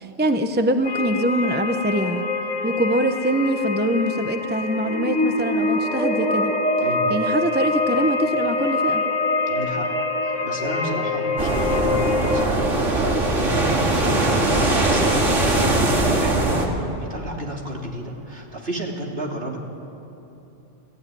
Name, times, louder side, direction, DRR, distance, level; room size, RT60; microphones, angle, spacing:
voice 1, 0.0-2.3 2.6-6.6 7.1-9.0, right 1 dB, 10° right, 7 dB, 0.8 m, -23 dB
sound 1, 0.8-12.5, left 2 dB, 85° left, 2.4 m, -24 dB
voice 2, 9.5-9.9 10.4-19.6, right 1 dB, 55° right, 0 dB, 3.2 m, -31 dB
sound 2, 11.4-16.7, right 2 dB, 90° right, 2.8 m, -20 dB
29.0 x 15.0 x 9.9 m, 2.9 s
omnidirectional pair, 1.2 m